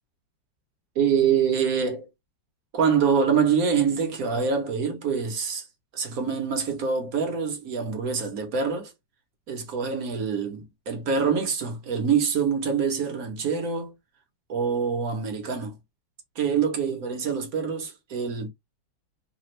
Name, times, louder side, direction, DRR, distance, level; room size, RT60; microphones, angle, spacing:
voice 1, 0.9-2.1 2.7-5.7 5.9-8.9 9.5-13.9 14.5-15.7 16.4-18.5, right 6 dB, 55° right, 1.2 m, -25 dB
3.3 x 2.3 x 3.1 m
omnidirectional pair, 2.1 m